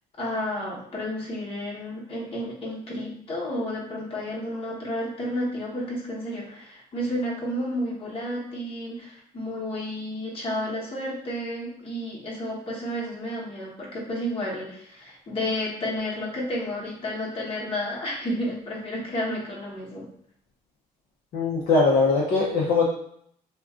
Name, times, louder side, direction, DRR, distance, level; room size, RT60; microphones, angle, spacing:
voice 1, 0.2-20.1, left 1 dB, 35° left, -4 dB, 1.1 m, -31 dB
voice 2, 21.3-22.9, left 3 dB, 60° left, -5 dB, 0.6 m, -21 dB
2.5 x 2.2 x 3.5 m, 0.68 s
cardioid pair, 110°, 17 cm